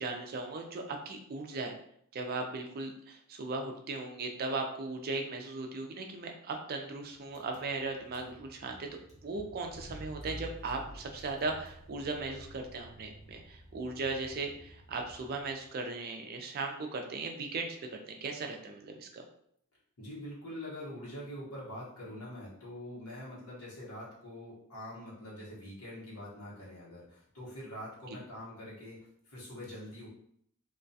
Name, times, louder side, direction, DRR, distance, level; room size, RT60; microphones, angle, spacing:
voice 1, 0.0-1.7 2.1-19.2, right 3 dB, 45° right, 3 dB, 0.4 m, -37 dB
Car / Engine, 7.3-15.7, equal, ahead, 0.8 m, -50 dB
voice 2, 20.0-30.1, left 1 dB, 80° left, -7 dB, 1.0 m, -44 dB
2.3 x 2.2 x 2.6 m, 0.67 s
head